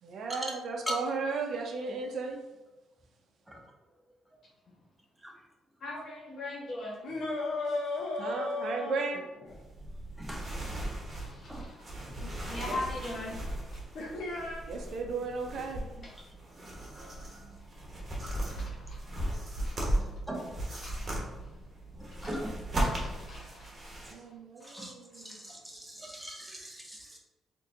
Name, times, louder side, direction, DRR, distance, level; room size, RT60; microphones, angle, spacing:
voice 1, 0.0-2.5 7.7-7.8 8.2-9.3 12.5-12.8 14.7-15.9 18.1-18.2 22.2-22.4 24.1-25.4 25.7-26.1, right 4 dB, 65° right, 3 dB, 0.5 m, -36 dB
voice 2, 5.8-7.0 11.1-11.9 12.5-13.4 17.9-18.0 18.4-19.1 19.6-19.9 20.8-21.1 22.2-22.3 22.8-24.0 24.6-24.9, left 2 dB, 55° left, -3 dB, 1.4 m, -41 dB
sound 1, 7.0-9.6 12.2-12.3 13.9-14.6, left 2 dB, 75° left, 0.7 m, -34 dB
sound 2, 9.5-24.1, right 1 dB, 40° right, 1.0 m, -37 dB
voice 3, 10.2-10.5 11.5-11.6 20.3-20.6 22.0-22.5 24.7-27.2, right 1 dB, 10° right, 0 dB, 0.7 m, -42 dB
4.0 x 2.6 x 2.5 m, 1.1 s
cardioid pair, 90°, 0 cm